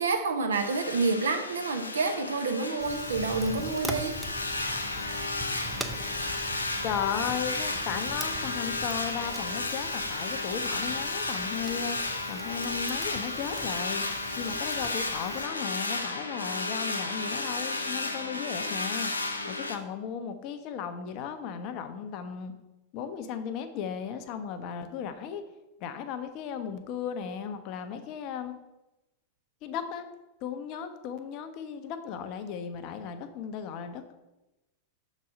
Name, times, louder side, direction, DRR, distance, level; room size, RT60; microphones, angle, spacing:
voice 1, 0.0-4.2, right 3 dB, 70° right, 5 dB, 0.8 m, -28 dB
sound 1, 0.5-19.8, left 2 dB, 80° left, 0.6 m, -33 dB
Fire, 2.8-15.5, right 2 dB, 5° right, 0.6 m, -42 dB
voice 2, 6.8-12.0 12.3-14.1 14.4-22.6 22.9-25.4 25.8-28.6 29.6-30.1 30.4-34.1, left 7 dB, 40° left, 9 dB, 0.7 m, -36 dB
6.3 x 4.0 x 5.4 m, 0.99 s
figure-of-eight pair, 90°, 0 cm